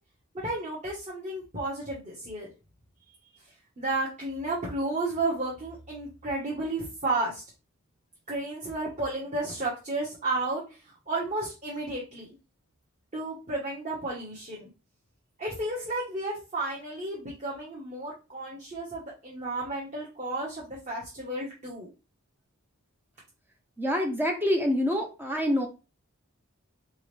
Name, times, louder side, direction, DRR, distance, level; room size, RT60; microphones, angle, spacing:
voice 1, 0.4-2.5 3.8-7.4 8.3-12.3 13.1-14.7 15.4-21.9, right 2 dB, 35° right, -5 dB, 1.3 m, -32 dB
voice 2, 23.8-25.7, equal, 10° right, 3 dB, 0.6 m, -26 dB
4.3 x 3.7 x 3.3 m, 0.30 s
head